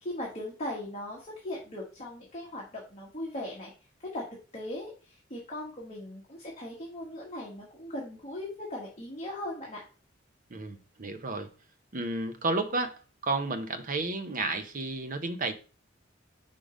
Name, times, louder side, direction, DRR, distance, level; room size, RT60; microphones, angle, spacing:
voice 1, 0.0-3.7 4.1-4.2 4.5-9.8, left 1 dB, 35° left, 1.4 m, -39 dB
voice 2, 10.5-11.5 11.9-15.5, right 3 dB, 45° right, 0.8 m, -32 dB
5.0 x 3.8 x 5.1 m
head